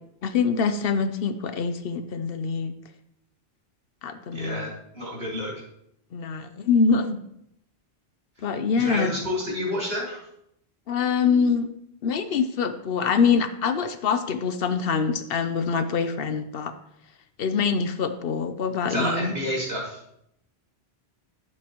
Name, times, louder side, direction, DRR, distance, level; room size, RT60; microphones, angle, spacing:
voice 1, 0.2-2.7 4.0-4.7 6.1-7.2 8.4-9.1 10.9-11.7 12.0-16.7 17.4-19.3, left 5 dB, 65° left, 10 dB, 0.8 m, -24 dB
voice 2, 4.3-5.5 8.7-10.2 18.9-20.0, equal, 65° right, -5 dB, 3.5 m, -29 dB
12.0 x 7.4 x 3.0 m, 0.75 s
omnidirectional pair, 1.1 m